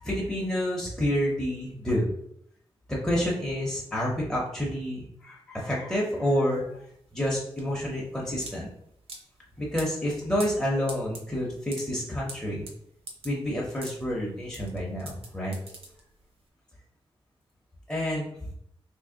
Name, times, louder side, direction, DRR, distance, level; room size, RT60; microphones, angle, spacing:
voice 1, 0.0-2.1 2.9-6.8 7.1-8.7 9.6-12.7 13.2-15.6 17.9-18.3, equal, 5° left, -5 dB, 0.6 m, -29 dB
sound 1, 6.5-16.4, right 2 dB, 85° right, 0.7 m, -45 dB
2.9 x 2.5 x 3.7 m, 0.72 s
wide cardioid pair, 145°, 10 cm